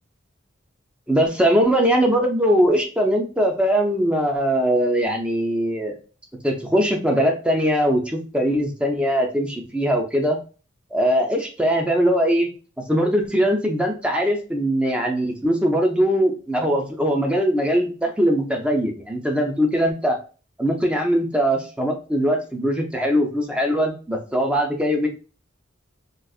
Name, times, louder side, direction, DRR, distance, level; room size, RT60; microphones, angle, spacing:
voice 1, 1.1-6.0 6.4-10.4 10.9-12.5 12.9-20.2 20.6-25.1, equal, 5° right, 2 dB, 0.5 m, -21 dB
3.9 x 2.5 x 2.4 m, 0.36 s
head